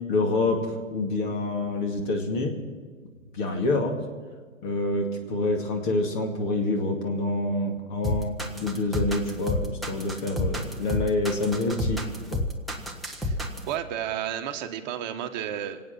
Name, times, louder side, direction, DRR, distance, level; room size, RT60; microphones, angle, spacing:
voice 1, 0.1-2.5 3.3-4.0 4.6-12.0 12.3-12.4, left 2 dB, 35° left, 2 dB, 2.2 m, -27 dB
sound 1, 8.0-13.7, left 1 dB, ahead, 0.8 m, -29 dB
voice 2, 13.7-15.8, right 10 dB, 35° right, 5 dB, 1.3 m, -32 dB
26.0 x 8.7 x 6.0 m, 1.5 s
figure-of-eight pair, 125°, 39 cm